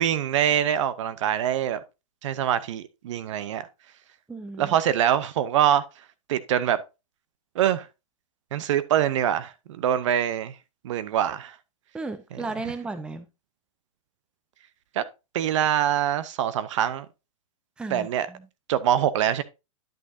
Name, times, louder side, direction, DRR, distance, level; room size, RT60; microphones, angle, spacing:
voice 1, 0.0-1.8 2.2-3.7 4.6-5.8 6.3-6.8 7.5-7.9 8.5-10.5 10.8-11.6 14.9-15.0 15.3-17.1 17.9-18.3 18.7-19.4, right 10 dB, 60° right, 0.8 m, -24 dB
voice 2, 4.3-4.8 11.9-13.3 17.8-18.5, right 3 dB, 5° right, 0.6 m, -35 dB
10.5 x 6.2 x 2.7 m
hypercardioid pair, 135°, 18 cm